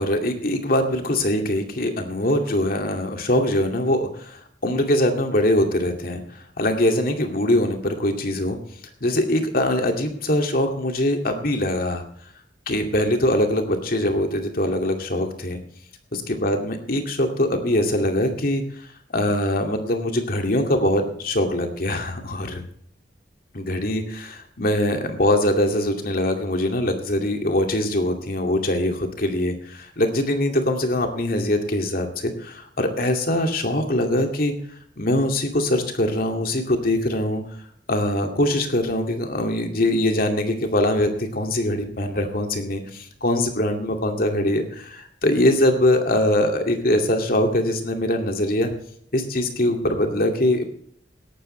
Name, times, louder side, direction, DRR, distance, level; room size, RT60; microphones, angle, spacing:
voice 1, 0.0-6.2 6.6-8.6 9.0-12.0 12.7-15.6 16.1-18.6 19.1-22.6 23.5-34.6 35.0-37.4 37.9-48.7 49.1-50.8, left 1 dB, 55° left, 4 dB, 2.4 m, -22 dB
17.0 x 12.5 x 3.3 m, 0.64 s
head